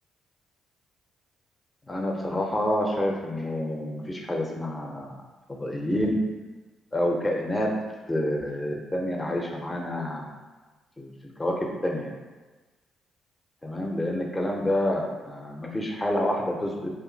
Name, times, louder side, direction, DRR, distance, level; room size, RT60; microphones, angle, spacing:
voice 1, 1.9-5.2 5.5-6.1 6.9-7.7 8.1-10.3 11.0-11.1 11.4-12.1 13.6-16.9, left 1 dB, 20° left, 0 dB, 0.7 m, -28 dB
2.5 x 2.5 x 3.8 m, 1.2 s
supercardioid pair, 55°, 0 cm